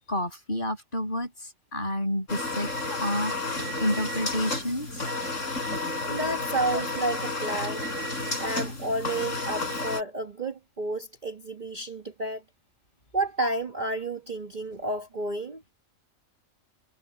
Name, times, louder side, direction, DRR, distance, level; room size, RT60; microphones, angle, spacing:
voice 1, 0.1-5.1 6.7-6.8, left 1 dB, 35° left, 7.3 m, -30 dB
sound 1, 2.3-10.0, left 2 dB, 60° left, 5.1 m, -31 dB
voice 2, 6.1-7.8 8.4-12.4 13.1-15.6, right 2 dB, 35° right, 1.3 m, -31 dB
omnidirectional pair, 1.5 m